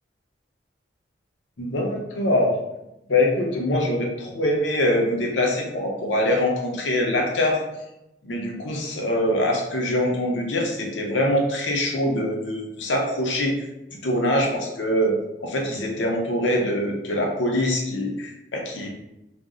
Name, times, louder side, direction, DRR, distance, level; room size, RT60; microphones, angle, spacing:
voice 1, 1.6-2.5 3.1-7.6 8.2-13.5 14.0-15.1 15.4-18.9, left 1 dB, 90° left, 0 dB, 0.7 m, -23 dB
2.5 x 2.0 x 3.6 m, 0.91 s
head